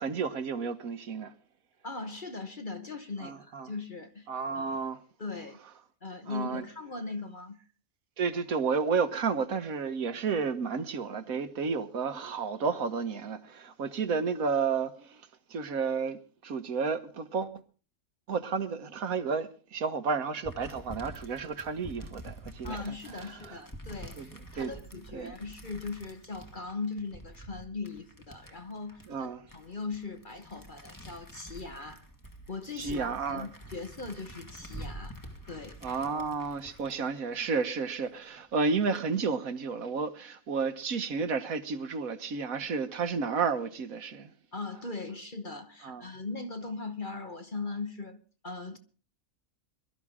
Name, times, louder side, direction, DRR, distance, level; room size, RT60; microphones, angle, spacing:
voice 1, 0.0-1.3 3.2-3.7 4.3-5.0 6.3-6.6 8.2-15.2 15.5-17.6 18.3-23.6 24.2-24.3 24.5-24.7 25.1-25.3 29.1-29.4 32.8-33.5 35.8-44.3 45.8-46.1, right 5 dB, 65° right, 1.5 m, -32 dB
voice 2, 1.8-4.3 4.5-4.8 5.2-5.6 6.0-7.6 22.6-32.1 32.5-35.2 35.5-35.8 44.5-48.8, left 3 dB, 35° left, 1.1 m, -39 dB
sound 1, 20.4-38.1 38.5-39.0, right 1 dB, 15° left, 1.7 m, -47 dB
22.5 x 12.5 x 3.6 m
omnidirectional pair, 1.6 m